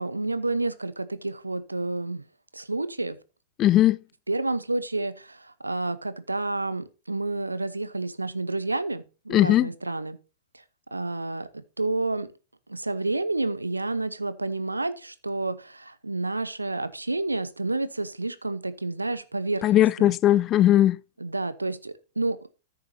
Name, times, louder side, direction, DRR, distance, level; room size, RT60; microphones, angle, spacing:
voice 1, 0.0-2.2 2.5-3.2 4.3-10.2 10.9-12.3 12.7-20.1 21.2-22.5, right 2 dB, 85° right, 0.9 m, -30 dB
voice 2, 3.6-4.0 9.3-9.7 19.6-21.0, left 13 dB, 30° left, 0.4 m, -19 dB
13.5 x 6.8 x 2.7 m
figure-of-eight pair, 105°, 0 cm